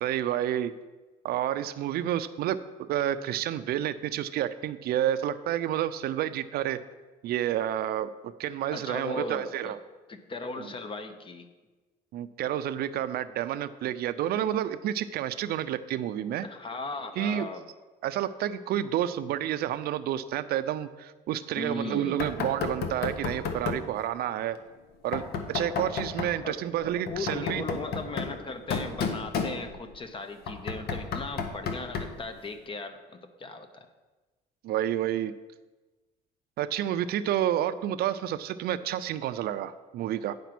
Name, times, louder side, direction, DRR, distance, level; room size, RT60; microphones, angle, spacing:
voice 1, 0.0-0.7 1.2-6.8 7.2-9.8 10.6-10.7 12.1-16.5 17.2-17.5 18.0-24.6 25.0-27.6 34.6-35.3 36.6-40.3, right 11 dB, 65° right, 13 dB, 0.5 m, -30 dB
voice 2, 8.7-9.8 10.1-11.5 16.4-17.6 21.6-22.2 26.4-26.6 27.1-33.9, left 2 dB, 30° left, 8 dB, 0.9 m, -37 dB
Knock, 22.2-23.9 25.1-26.4 27.1-30.0 30.5-32.3, left 5 dB, 75° left, 1.0 m, -32 dB
9.2 x 5.1 x 6.0 m, 1.2 s
cardioid pair, 110°, 17 cm